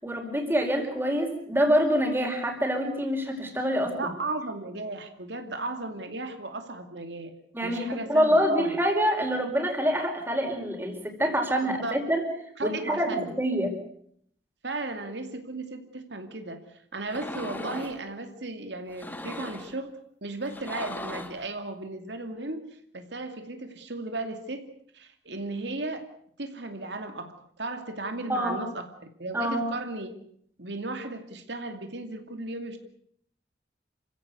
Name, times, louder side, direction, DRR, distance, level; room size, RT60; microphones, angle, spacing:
voice 1, 0.0-3.9 7.5-12.2 12.6-13.1 13.4-13.7 28.3-28.6 29.3-29.6, equal, 10° right, 3 dB, 4.7 m, -26 dB
voice 2, 4.0-7.3 7.6-8.8 11.6-12.0 12.6-13.4 14.6-16.6 16.9-19.9 20.2-24.6 24.9-26.0 26.4-27.3 27.6-28.9 29.2-30.2 30.6-32.8, right 2 dB, 75° right, 6 dB, 2.6 m, -35 dB
sound 1, 17.1-18.0 18.9-19.8 20.4-21.5, left 1 dB, 10° left, 1.6 m, -38 dB
28.0 x 16.0 x 8.3 m, 0.66 s
head